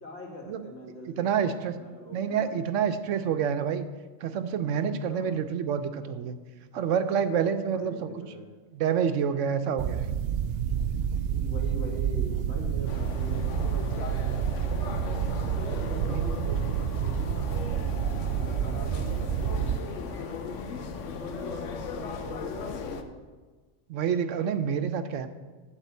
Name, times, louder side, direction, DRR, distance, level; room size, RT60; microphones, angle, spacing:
voice 1, 0.0-2.5 5.1-5.4 7.7-8.5 11.3-15.0 15.6-17.9 18.3-20.3 21.1-23.1, equal, 60° left, -2 dB, 2.3 m, -42 dB
voice 2, 1.1-1.8 2.1-3.9 4.2-6.4 6.7-8.1 8.7-10.1 16.1-16.3 23.9-25.3, right 7 dB, 90° right, 10 dB, 1.0 m, -28 dB
sound 1, 9.8-19.8, right 8 dB, 65° right, 0.7 m, -29 dB
sound 2, 12.9-23.0, left 4 dB, 80° left, 1.1 m, -37 dB
11.5 x 4.1 x 8.0 m, 1.4 s
omnidirectional pair, 1.2 m